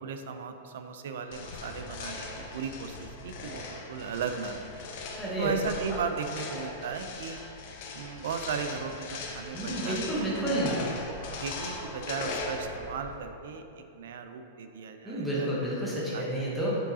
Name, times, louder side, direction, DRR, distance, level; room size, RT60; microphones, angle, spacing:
voice 1, 0.0-4.9 5.4-7.4 7.9-11.1 11.4-15.5 16.1-16.4, right 6 dB, 65° right, 7 dB, 0.5 m, -36 dB
sound 1, 1.3-13.2, left 3 dB, 40° left, 0.7 m, -39 dB
voice 2, 5.1-5.5 5.9-6.0 9.5-10.8 15.0-16.8, right 1 dB, ahead, -8 dB, 1.0 m, -30 dB
7.3 x 6.4 x 2.8 m, 2.7 s
supercardioid pair, 180°, 0 cm